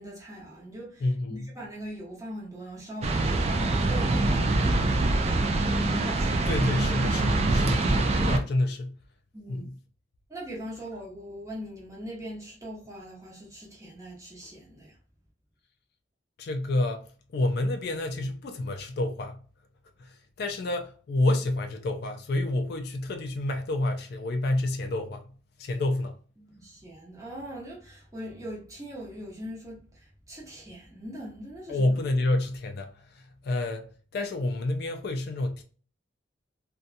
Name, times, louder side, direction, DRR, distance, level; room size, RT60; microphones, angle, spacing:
voice 1, 0.0-6.5 9.3-9.7 10.3-15.0 26.4-31.8, equal, 15° right, 0.9 m, -41 dB
voice 2, 1.0-1.5 6.5-8.9 9.5-9.7 16.4-17.1 17.3-19.4 20.0-25.2 25.6-26.1 31.7-33.9 34.1-35.6, left 2 dB, 55° left, 0.3 m, -29 dB
sound 1, 3.0-8.4, right 2 dB, 35° right, 0.3 m, -24 dB
2.7 x 2.2 x 2.5 m
head